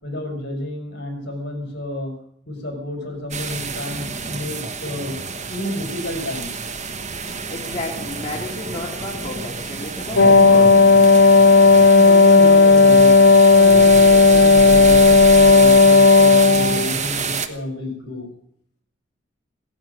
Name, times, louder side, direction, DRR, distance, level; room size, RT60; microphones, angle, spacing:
voice 1, 0.0-2.1 2.5-5.2 5.5-6.5 11.9-18.3, left 1 dB, 55° left, 3 dB, 5.2 m, -30 dB
sound 1, 3.3-17.5, right 4 dB, 35° right, 1.2 m, -28 dB
voice 2, 7.5-10.8, left 2 dB, 25° left, -3 dB, 2.7 m, -32 dB
Wind instrument woodwind instrument, 10.2-16.9, left 4 dB, 85° left, 1.0 m, -11 dB
17.0 x 10.5 x 7.8 m, 0.65 s
head